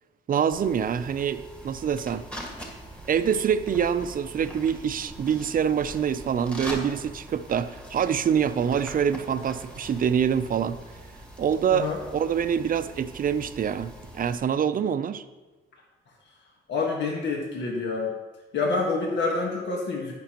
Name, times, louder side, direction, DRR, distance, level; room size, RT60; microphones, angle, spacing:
voice 1, 0.3-2.2 3.1-10.8 11.4-15.2, right 8 dB, 45° right, 12 dB, 0.6 m, -25 dB
sound 1, 0.5-14.4, equal, 5° left, 1.8 m, -43 dB
voice 2, 11.7-12.0 16.7-18.1 18.5-20.1, left 3 dB, 60° left, -1 dB, 1.5 m, -27 dB
14.5 x 6.1 x 3.0 m, 1.2 s
cardioid pair, 90°, 20 cm